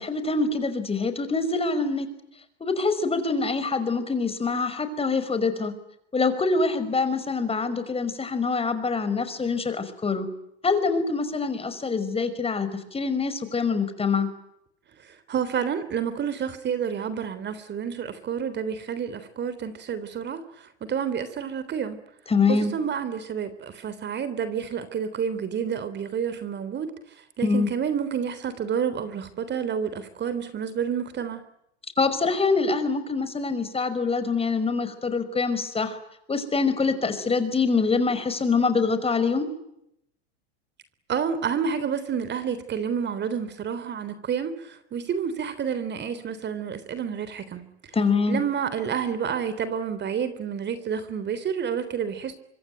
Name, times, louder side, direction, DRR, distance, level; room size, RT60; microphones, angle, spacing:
voice 1, 0.0-2.1 2.6-5.7 6.1-10.3 10.6-14.3 22.3-22.7 27.4-27.7 32.0-36.0 36.3-39.5 47.9-48.4, left 4 dB, 15° left, 11 dB, 5.5 m, -25 dB
voice 2, 15.0-22.0 22.5-26.9 27.4-31.4 41.1-47.6 48.3-52.3, right 7 dB, 35° right, 13 dB, 3.5 m, -29 dB
25.0 x 25.0 x 9.3 m, 0.78 s
hypercardioid pair, 100°, 32 cm